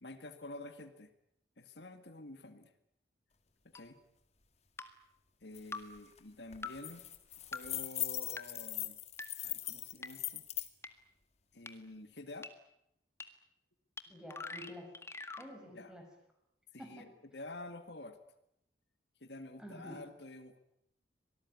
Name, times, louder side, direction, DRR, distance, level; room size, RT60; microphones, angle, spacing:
voice 1, 0.0-1.1 1.6-2.7 3.7-4.0 5.4-7.0 7.4-9.0 9.4-10.4 11.5-12.5 15.7-15.9 16.7-18.2 19.2-20.6, left 2 dB, 70° left, 8 dB, 2.1 m, -49 dB
sound 1, 3.7-3.8 4.8-4.9 5.7-5.8 6.6-6.7 7.5-7.6 8.4-8.5 9.2-9.3 10.0-10.1 10.8-10.9 11.7-11.8 12.4-12.5 13.2-13.3 14.0-14.1 14.3-15.5, left 3 dB, 15° left, 1.8 m, -43 dB
sound 2, 5.5-5.6 6.0-6.2 6.5-10.7, left 13 dB, 35° left, 2.1 m, -40 dB
voice 2, 14.1-14.9 15.4-16.0 16.8-17.0 19.6-20.0, equal, 5° right, 3 dB, 6.2 m, -49 dB
25.5 x 19.0 x 9.7 m, 0.79 s
head